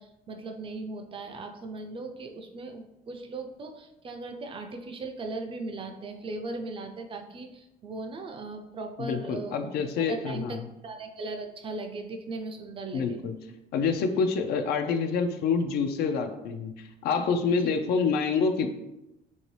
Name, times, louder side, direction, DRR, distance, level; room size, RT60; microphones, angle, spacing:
voice 1, 0.0-9.7 10.0-10.6 10.8-13.2 17.6-17.7, right 3 dB, 30° right, 4 dB, 0.4 m, -38 dB
voice 2, 9.0-10.7 12.9-13.3 13.7-18.7, left 5 dB, 70° left, 7 dB, 0.4 m, -27 dB
2.9 x 2.7 x 3.1 m, 0.93 s
cardioid pair, 110°, 17 cm